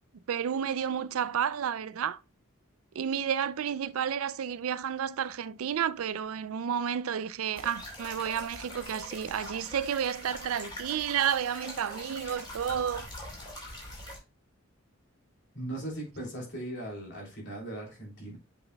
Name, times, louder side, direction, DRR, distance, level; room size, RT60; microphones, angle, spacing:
voice 1, 0.3-2.2 2.9-13.1, right 8 dB, 80° right, 0.4 m, -31 dB
sound 1, 7.5-14.2, left 1 dB, 20° left, 2.6 m, -43 dB
voice 2, 15.5-18.4, right 1 dB, 55° left, 3.1 m, -38 dB
7.7 x 5.5 x 2.2 m
head